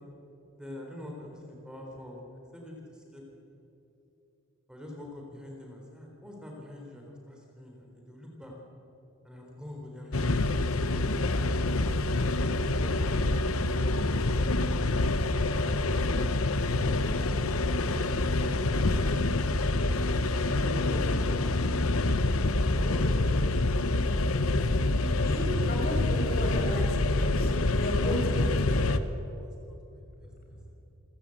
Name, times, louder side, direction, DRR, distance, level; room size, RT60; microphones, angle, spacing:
voice 1, 0.6-2.3 2.5-3.2 4.7-8.5 9.2-10.4 10.8-12.0 12.5-14.2 20.4-21.6 22.8-23.3 24.8-25.4 29.4-30.3, left 1 dB, 5° right, -1 dB, 4.0 m, -45 dB
sound 1, 10.1-29.0, left 2 dB, 80° left, 1.0 m, -26 dB
voice 2, 20.6-21.2 22.6-23.4 24.9-29.0 30.3-30.6, equal, 45° left, 1 dB, 5.3 m, -36 dB
29.0 x 15.0 x 8.8 m, 3.0 s
head